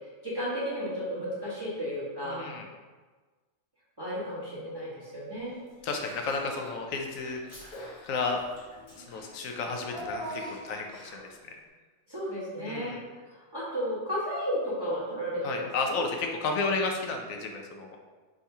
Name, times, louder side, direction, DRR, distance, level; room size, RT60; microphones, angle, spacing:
voice 1, 0.2-2.4 4.0-5.6 12.1-12.9 13.3-16.0, equal, 20° right, -9 dB, 1.2 m, -33 dB
voice 2, 2.2-2.7 5.8-7.4 7.8-8.4 9.0-11.6 12.6-13.0 15.4-18.0, left 4 dB, 85° left, 2 dB, 1.0 m, -32 dB
Child speech kid speaking / Bathtub (filling or washing), 5.8-6.8 7.1-11.4, equal, 45° left, 1.4 m, -43 dB
3.6 x 2.8 x 4.6 m, 1.4 s
omnidirectional pair, 1.3 m